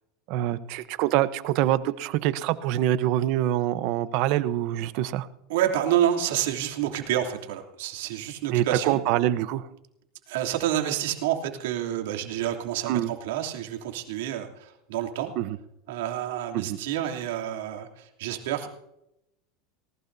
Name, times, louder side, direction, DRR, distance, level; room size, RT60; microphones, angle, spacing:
voice 1, 0.3-5.3 8.5-9.7 12.9-13.1 15.4-15.6 16.5-16.8, right 13 dB, 60° right, 14 dB, 0.9 m, -25 dB
voice 2, 5.5-9.0 10.3-15.3 15.9-18.7, right 11 dB, 80° right, 2 dB, 2.9 m, -28 dB
19.5 x 19.0 x 2.7 m, 0.82 s
supercardioid pair, 125°, 0 cm